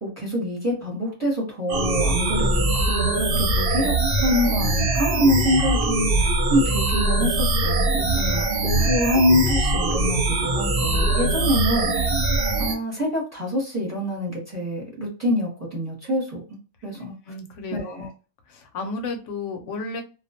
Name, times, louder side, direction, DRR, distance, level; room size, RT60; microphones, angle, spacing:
voice 1, 0.0-4.0 4.2-12.1 12.6-16.4 16.8-17.1 17.7-18.1, left 1 dB, 15° right, -3 dB, 0.8 m, -25 dB
sound 1, 1.7-12.7, right 2 dB, 60° right, 0.7 m, -22 dB
voice 2, 17.3-18.1 18.5-20.0, left 3 dB, 70° left, 5 dB, 0.9 m, -32 dB
2.3 x 2.0 x 2.6 m, 0.33 s
omnidirectional pair, 1.4 m